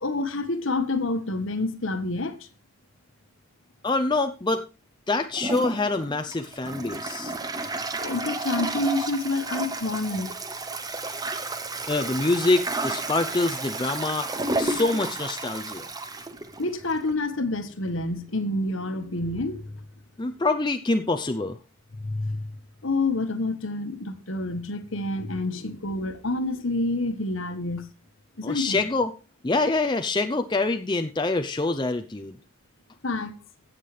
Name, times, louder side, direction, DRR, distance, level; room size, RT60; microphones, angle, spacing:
voice 1, 0.0-2.5 7.9-10.3 16.6-19.8 22.0-22.5 22.8-27.9 28.4-28.8 33.0-33.4, left 2 dB, 65° left, 1.3 m, -28 dB
voice 2, 3.8-4.6 5.1-7.3 11.9-14.3 14.6-15.9 20.2-21.6 28.4-29.1 29.4-32.4, left 3 dB, 20° left, 0.5 m, -25 dB
Toilet flush, 5.3-17.1, right 2 dB, 15° right, 0.8 m, -32 dB
16.0 x 7.4 x 3.3 m
head